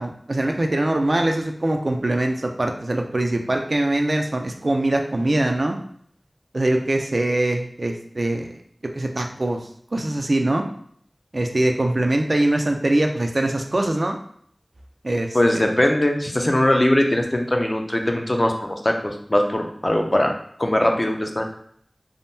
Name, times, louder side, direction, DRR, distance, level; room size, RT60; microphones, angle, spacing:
voice 1, 0.0-5.8 6.5-8.5 8.9-9.6 9.9-10.6 11.3-14.2 15.0-15.7, right 1 dB, 65° right, 3 dB, 0.4 m, -22 dB
voice 2, 15.3-20.3 20.6-21.5, left 1 dB, 40° left, 3 dB, 0.4 m, -20 dB
3.5 x 2.1 x 2.6 m, 0.62 s
wide cardioid pair, 50°, 0 cm